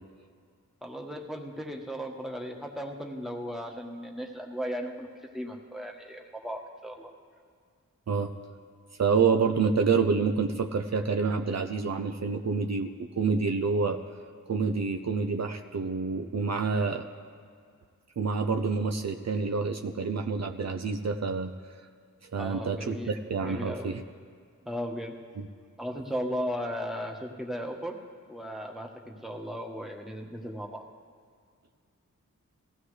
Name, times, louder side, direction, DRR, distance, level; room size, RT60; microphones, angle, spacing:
voice 1, 0.8-5.1 5.3-7.1 22.3-23.2 23.4-23.9 24.6-25.1 25.8-28.0 28.3-30.8, equal, ahead, 1 dB, 1.4 m, -36 dB
voice 2, 9.0-14.0 14.5-17.1 18.2-21.5 22.2-24.0 25.4-25.5, right 5 dB, 55° right, 5 dB, 0.7 m, -28 dB
19.5 x 15.5 x 3.3 m, 2.1 s
wide cardioid pair, 80°, 31 cm